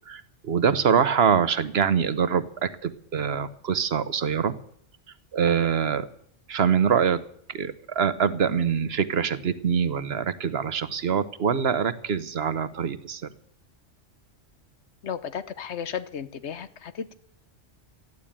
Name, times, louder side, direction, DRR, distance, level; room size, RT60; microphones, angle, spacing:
voice 1, 0.1-4.6 5.3-6.1 6.5-7.2 7.5-13.3, right 7 dB, 60° right, 14 dB, 1.1 m, -24 dB
voice 2, 15.0-17.1, left 7 dB, 75° left, 13 dB, 1.2 m, -34 dB
14.0 x 11.0 x 8.7 m, 0.66 s
omnidirectional pair, 1.2 m